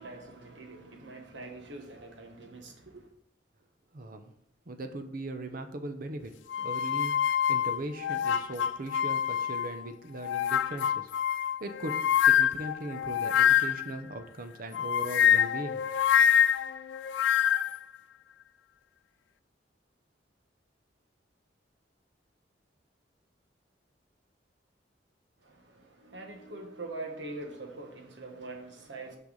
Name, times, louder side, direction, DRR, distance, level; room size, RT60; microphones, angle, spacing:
voice 1, 0.0-3.0 25.4-29.2, right 2 dB, 90° right, 1.3 m, -43 dB
voice 2, 3.9-4.3 4.7-11.1 11.6-15.8, right 1 dB, 55° right, 0.8 m, -39 dB
sound 1, 6.5-9.8 10.2-14.0 14.7-17.8, left 9 dB, 85° left, 0.3 m, -26 dB
5.9 x 5.9 x 3.9 m
head